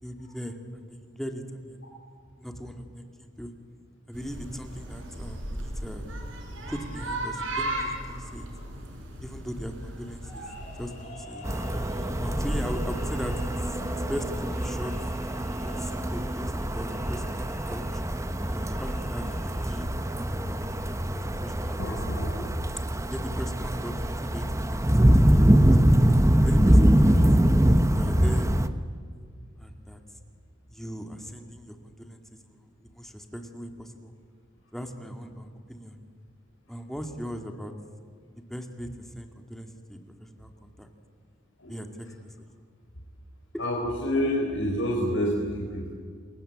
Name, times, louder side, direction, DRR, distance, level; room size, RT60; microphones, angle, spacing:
voice 1, 0.0-1.8 2.4-3.5 4.1-6.0 6.7-8.5 9.2-10.4 10.8-11.4 12.2-13.8 14.1-14.9 15.6-18.0 18.5-19.9 20.4-20.7 21.1-22.0 23.0-26.0 26.4-27.2 27.9-28.5 29.6-30.0 30.7-34.1 34.7-36.0 36.7-37.7 38.5-40.9 41.7-42.3 43.5-43.6, equal, ahead, 5 dB, 2.2 m, -39 dB
sound 1, 4.1-11.1, right 1 dB, 75° right, 6.3 m, -36 dB
sound 2, 10.2-21.3, left 2 dB, 35° left, 6.4 m, -49 dB
sound 3, 11.4-28.7, right 1 dB, 15° right, 1.1 m, -23 dB
voice 2, 21.8-22.3 41.6-41.7 43.6-45.9, equal, 75° left, -1 dB, 4.5 m, -28 dB
29.0 x 21.5 x 8.8 m, 2.1 s
head